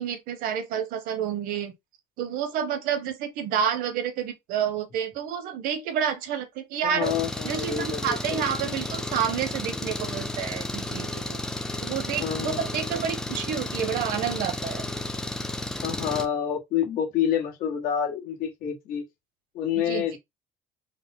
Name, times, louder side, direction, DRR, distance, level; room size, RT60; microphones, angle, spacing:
voice 1, 0.0-1.7 2.2-7.1 7.4-11.4 11.8-14.8 19.7-20.2, right 8 dB, 80° right, 0.9 m, -29 dB
voice 2, 6.8-8.9 12.2-12.7 15.8-19.0 19.5-20.2, left 9 dB, 75° left, 1.4 m, -28 dB
Engine, 7.0-16.3, left 2 dB, 5° left, 0.5 m, -32 dB
4.2 x 2.1 x 3.6 m
cardioid pair, 150°, 15 cm